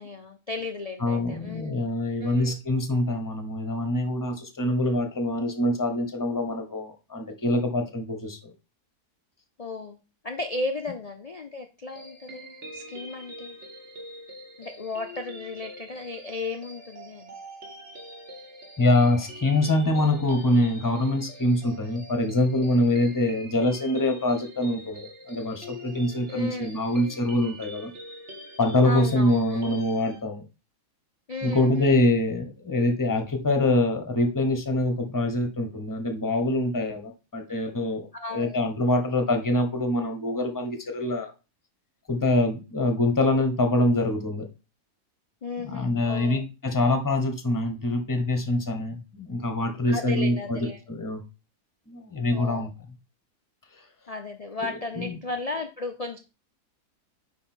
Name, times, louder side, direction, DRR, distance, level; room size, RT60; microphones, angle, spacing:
voice 1, 0.0-1.8 2.2-2.5 9.6-13.6 14.6-17.3 26.3-26.7 28.8-29.6 31.3-32.0 38.1-38.6 45.4-46.4 49.9-50.8 52.3-52.7 54.1-56.2, left 3 dB, 80° left, 5 dB, 0.3 m, -35 dB
voice 2, 1.0-8.5 18.8-27.9 28.6-30.4 31.4-41.3 42.1-44.5 45.6-51.2 51.9-52.7 54.7-55.2, left 1 dB, 15° left, 6 dB, 1.0 m, -25 dB
sound 1, 11.9-30.2, equal, 45° right, 1.8 m, -44 dB
9.4 x 3.4 x 4.5 m, 0.30 s
omnidirectional pair, 1.7 m